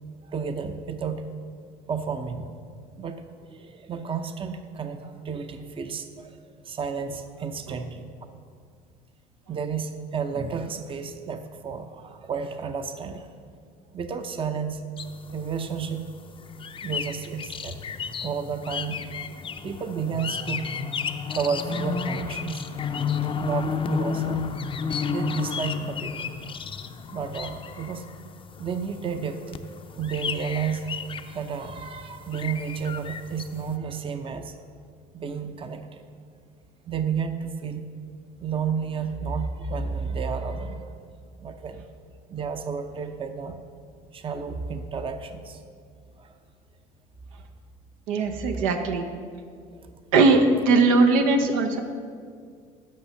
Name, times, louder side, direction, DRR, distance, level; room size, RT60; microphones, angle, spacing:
voice 1, 0.2-1.3 1.9-2.5 3.0-8.1 9.5-13.3 13.9-14.8 15.3-16.0 16.8-17.8 18.2-19.0 19.6-20.7 21.3-22.7 23.4-24.5 25.1-26.3 27.1-28.0 28.6-29.4 29.9-34.6 35.1-36.0 36.8-37.8 38.4-40.9 41.4-41.8 42.3-43.6 44.1-45.6 46.2-46.4 49.8-49.9, right 6 dB, 30° right, 8 dB, 0.7 m, -31 dB
sound 1, 15.0-33.7, left 6 dB, 30° left, 0.5 m, -33 dB
voice 2, 48.1-49.1 50.1-51.8, right 3 dB, 85° right, 4 dB, 0.8 m, -20 dB
8.6 x 6.1 x 5.5 m, 2.1 s
supercardioid pair, 85°, 17 cm